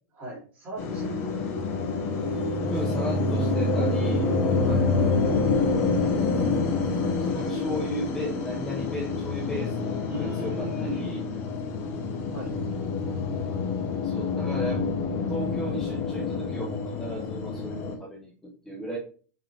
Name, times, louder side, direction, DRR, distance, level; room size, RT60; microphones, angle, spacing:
voice 1, 0.2-1.2 4.6-4.8 10.1-11.0 12.3-12.5, right 1 dB, 20° right, -5 dB, 3.2 m, -37 dB
sound 1, 0.8-18.0, left 3 dB, 30° left, 1.2 m, -27 dB
voice 2, 2.7-4.3 7.2-11.2 14.0-14.8 15.3-19.0, equal, 5° left, -3 dB, 0.9 m, -35 dB
5.6 x 5.0 x 3.5 m, 0.41 s
supercardioid pair, 175°, 8 cm